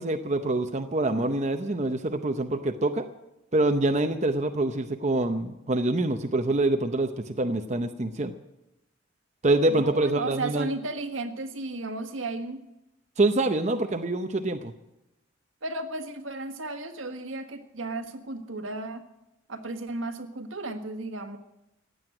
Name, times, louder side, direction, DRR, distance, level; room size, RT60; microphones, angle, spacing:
voice 1, 0.0-3.1 3.5-8.3 9.4-10.7 13.2-14.7, right 2 dB, 35° right, 6 dB, 0.7 m, -25 dB
voice 2, 9.7-12.6 15.6-19.0 19.5-21.4, right 2 dB, 80° right, 6 dB, 1.5 m, -34 dB
15.5 x 9.5 x 9.0 m, 0.90 s
head